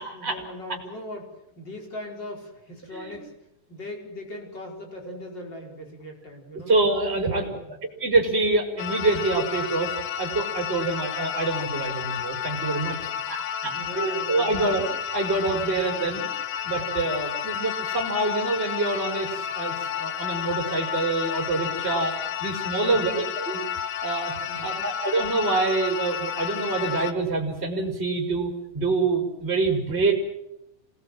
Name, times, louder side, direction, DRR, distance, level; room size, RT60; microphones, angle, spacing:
voice 1, 0.0-3.3 3.7-6.7 7.2-7.7 13.1-14.7 22.8-23.2 24.5-24.9, left 1 dB, 30° left, 1 dB, 5.4 m, -40 dB
voice 2, 6.7-9.9 10.2-13.0 13.3-14.8 15.1-16.3 16.6-22.1 22.4-23.6 24.0-24.4 24.6-30.1, right 3 dB, 15° right, 2 dB, 4.8 m, -26 dB
sound 1, 8.8-27.1, left 9 dB, 70° left, 2.3 m, -31 dB
27.5 x 19.5 x 7.7 m, 0.84 s
omnidirectional pair, 4.1 m